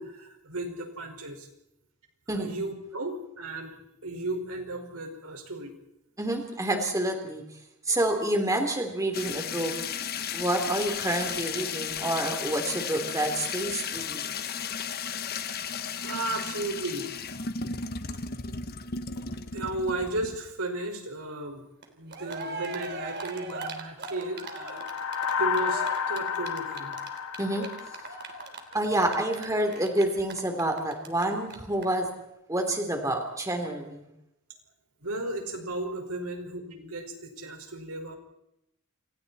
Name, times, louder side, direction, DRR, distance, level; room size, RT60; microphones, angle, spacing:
voice 1, 0.0-1.5 2.3-5.7 7.9-8.0 10.3-10.4 16.0-17.1 17.8-18.2 19.5-21.6 21.9-24.9 25.1-26.9 35.0-38.1, right 2 dB, 85° right, 3 dB, 5.4 m, -35 dB
voice 2, 6.2-7.4 7.9-9.7 10.3-14.3 27.4-27.7 28.7-32.1 32.5-34.1, right 1 dB, 15° right, 4 dB, 3.5 m, -28 dB
sound 1, 9.1-20.5, left 6 dB, 45° left, 1.2 m, -34 dB
Cheering, 21.8-21.9 22.1-31.2 31.5-31.6 31.8-31.9, right 3 dB, 50° right, 3.4 m, -39 dB
sound 2, 24.3-28.9, left 7 dB, 75° left, 1.7 m, -32 dB
29.0 x 27.5 x 4.4 m, 0.84 s
head